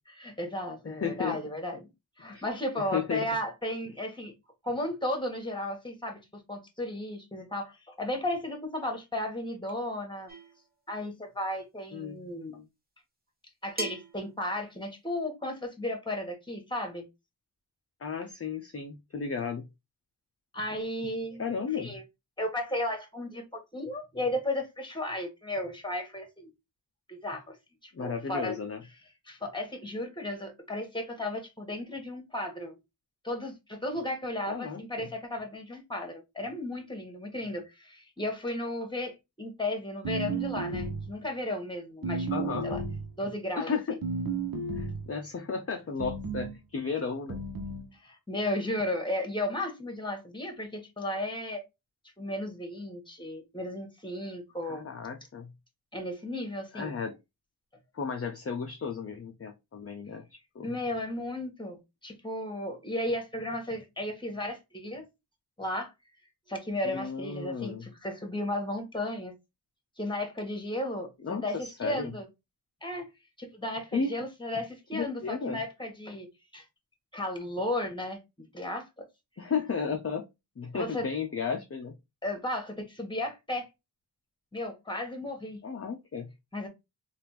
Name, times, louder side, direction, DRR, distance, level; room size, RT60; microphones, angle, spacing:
voice 1, 0.2-1.9 2.2-4.3 4.6-10.3 10.9-12.6 13.6-17.1 20.5-21.5 21.7-22.0 22.4-26.5 27.1-27.5 27.8-28.6 29.3-32.7 33.2-42.8 43.2-44.0 48.0-51.6 52.2-54.8 55.9-56.9 60.6-65.0 65.6-65.9 66.5-69.3 70.0-72.3 72.8-73.1 73.4-76.3 76.5-76.6 77.1-78.2 78.5-79.0 80.7-81.0 82.2-83.7 84.5-85.6 86.5-86.7, left 1 dB, 10° left, 1.3 m, -34 dB
voice 2, 0.8-1.4 2.3-2.4 2.8-3.3 11.9-12.7 18.0-19.7 21.4-21.9 27.9-28.8 34.5-35.1 42.3-42.7 43.6-44.0 44.8-47.4 54.7-55.5 56.7-57.1 57.9-60.7 66.8-67.9 71.2-72.1 73.9-74.2 74.9-75.6 79.4-80.2 80.6-81.9 85.6-86.3, left 5 dB, 35° left, 0.5 m, -34 dB
sound 1, 10.3-10.6 12.2-12.3 13.8-14.2, right 2 dB, 25° right, 1.0 m, -37 dB
sound 2, 40.0-41.2 42.0-43.1 44.0-45.1 46.0-46.6 47.3-47.9, right 3 dB, 60° right, 0.8 m, -33 dB
3.4 x 2.5 x 2.9 m
wide cardioid pair, 45°, 40 cm